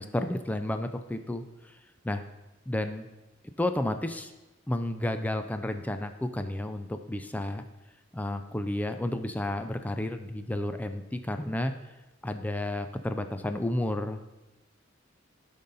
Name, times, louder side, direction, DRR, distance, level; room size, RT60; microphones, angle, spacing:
voice 1, 0.0-1.8 2.0-2.2 2.7-3.1 3.6-4.3 4.7-7.6 8.1-11.7 12.2-14.3, left 1 dB, 10° left, 8 dB, 0.4 m, -31 dB
12.5 x 5.3 x 4.0 m, 1.1 s
head